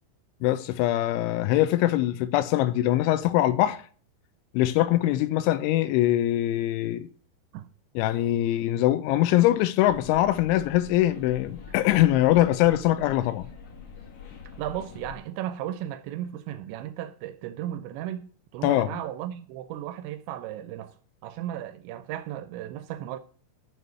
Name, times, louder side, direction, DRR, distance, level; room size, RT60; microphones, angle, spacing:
voice 1, 0.4-3.8 4.5-7.1 8.0-13.4 18.6-18.9, left 14 dB, 85° left, 3.0 m, -23 dB
sound 1, 9.9-15.2, left 5 dB, 50° left, 2.4 m, -45 dB
voice 2, 14.6-18.3 18.5-20.9 21.2-23.2, right 12 dB, 85° right, 2.7 m, -35 dB
6.7 x 6.3 x 5.5 m
omnidirectional pair, 5.4 m